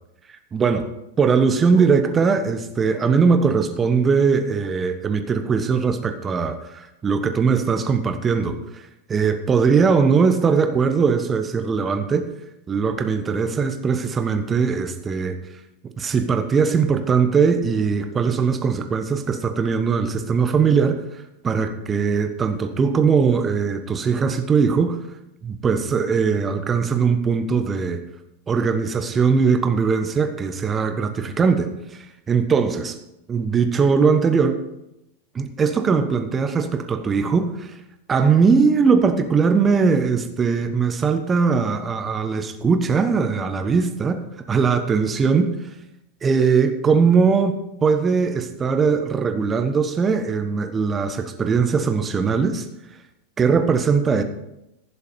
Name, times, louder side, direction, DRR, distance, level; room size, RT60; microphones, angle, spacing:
voice 1, 0.5-0.9 1.2-12.3 12.7-15.4 16.0-21.0 21.4-25.0 25.4-28.0 28.5-33.0 33.3-34.6 35.3-37.7 38.1-45.5 46.2-52.6 53.4-54.2, right 5 dB, 20° right, 8 dB, 1.2 m, -20 dB
15.5 x 7.1 x 5.3 m, 0.88 s
figure-of-eight pair, 90°, 0 cm